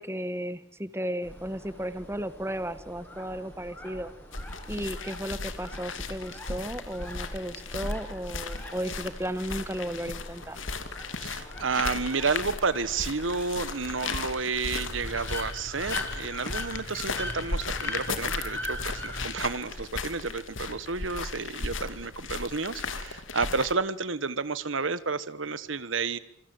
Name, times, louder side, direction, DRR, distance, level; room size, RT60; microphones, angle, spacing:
voice 1, 0.0-4.1 4.7-10.6, equal, 15° right, 13 dB, 1.3 m, -34 dB
sound 1, 1.2-19.3, left 1 dB, 10° left, 6.5 m, -42 dB
sound 2, 4.3-23.7, left 4 dB, 85° left, 2.8 m, -36 dB
voice 2, 11.2-26.2, right 4 dB, 85° right, 16 dB, 1.3 m, -31 dB
27.0 x 26.0 x 7.8 m, 0.67 s
head